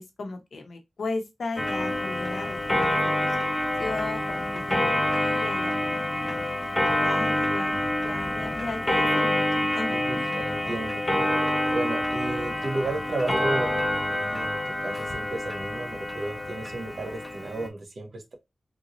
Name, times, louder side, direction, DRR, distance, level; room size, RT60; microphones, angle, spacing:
voice 1, 0.0-6.4 7.0-7.8 8.0-10.3, left 3 dB, 80° left, 0.9 m, -36 dB
Clock, 1.6-17.7, left 1 dB, 20° left, 0.8 m, -27 dB
voice 2, 9.9-11.0 11.7-18.3, right 2 dB, 65° right, 1.2 m, -33 dB
3.6 x 2.6 x 3.0 m
wide cardioid pair, 105°, 0 cm